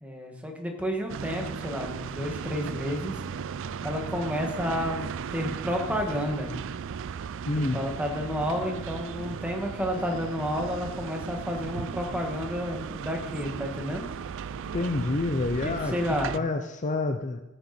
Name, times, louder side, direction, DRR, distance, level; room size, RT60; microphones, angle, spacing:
voice 1, 0.0-3.2 3.8-6.5 7.5-14.0 15.6-16.3, equal, 5° right, 2 dB, 1.5 m, -31 dB
sound 1, 1.1-16.4, right 6 dB, 65° right, 0.4 m, -36 dB
voice 2, 7.5-7.8 14.7-15.9 16.3-17.4, left 3 dB, 35° left, 7 dB, 0.5 m, -28 dB
16.0 x 6.6 x 4.3 m, 0.98 s
head